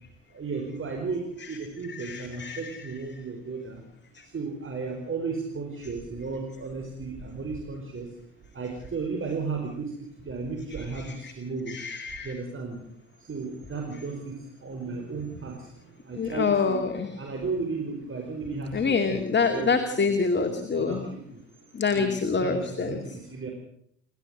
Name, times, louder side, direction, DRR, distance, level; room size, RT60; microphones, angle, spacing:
voice 1, 0.3-3.8 4.2-8.1 8.5-9.9 10.2-11.8 12.2-12.8 13.2-16.8 17.2-19.7 20.0-20.1 20.5-21.4 21.9-22.1 22.4-23.5, right 4 dB, 35° right, 1 dB, 4.9 m, -34 dB
voice 2, 1.9-2.8 4.1-4.2 10.7-11.3 11.7-12.4 16.1-17.1 18.7-21.0 21.7-23.2, left 5 dB, 30° left, 6 dB, 2.4 m, -27 dB
28.0 x 13.0 x 7.8 m, 0.69 s
figure-of-eight pair, 50°, 36 cm